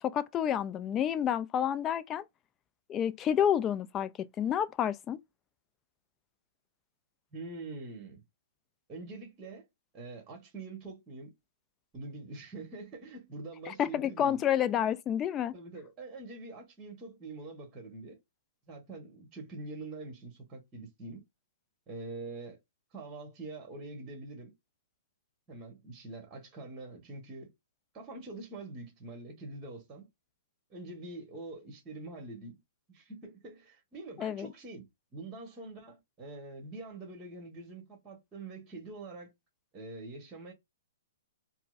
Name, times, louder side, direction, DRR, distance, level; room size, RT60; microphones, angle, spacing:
voice 1, 0.0-2.2 2.9-5.2 13.7-15.5 34.2-34.5, left 9 dB, 25° left, 0.3 m, -29 dB
voice 2, 7.3-8.2 8.9-9.6 9.9-11.3 11.9-14.4 14.8-14.9 15.5-18.2 18.7-21.2 21.9-22.6 22.9-24.5 25.5-27.5 27.9-30.1 30.7-32.6 32.9-34.9 35.1-39.3 39.7-40.5, right 2 dB, 20° right, 1.3 m, -45 dB
4.4 x 2.0 x 2.4 m
hypercardioid pair, 125°, 0 cm